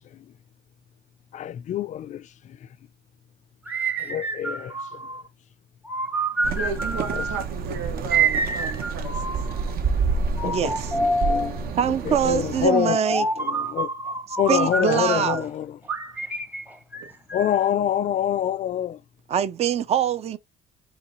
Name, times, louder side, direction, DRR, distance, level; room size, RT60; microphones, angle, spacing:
voice 1, 1.3-2.2 4.0-4.7 7.2-7.3 10.4-10.7 11.2-11.5 12.1-13.0 13.4-13.9 14.4-15.7 17.3-19.0, left 11 dB, 45° left, 0.4 m, -25 dB
sound 1, 3.7-5.3 5.9-7.4 8.1-9.7 10.4-11.6 12.7-15.4 15.9-17.7, right 3 dB, 10° right, 0.8 m, -27 dB
sound 2, 6.4-12.7, right 5 dB, 60° right, 0.9 m, -28 dB
voice 2, 6.5-9.4 10.6-10.9 17.0-17.1, right 5 dB, 80° right, 1.4 m, -35 dB
voice 3, 10.4-10.9 11.8-13.3 14.3-15.5 19.3-20.4, right 8 dB, 40° right, 0.5 m, -24 dB
5.0 x 3.1 x 3.0 m
cardioid pair, 110°, 17 cm